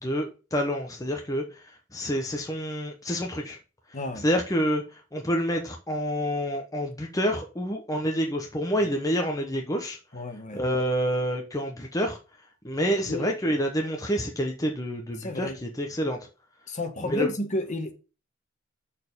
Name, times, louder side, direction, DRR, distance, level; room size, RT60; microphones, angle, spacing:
voice 1, 0.0-3.6 4.2-10.0 10.5-12.2 12.6-16.2 17.0-17.3, equal, 15° left, 1.0 m, -28 dB
voice 2, 3.9-4.2 8.8-8.9 10.1-10.6 13.1-13.3 15.2-15.6 16.7-17.9, left 1 dB, 35° left, 1.3 m, -31 dB
6.6 x 4.3 x 6.7 m
head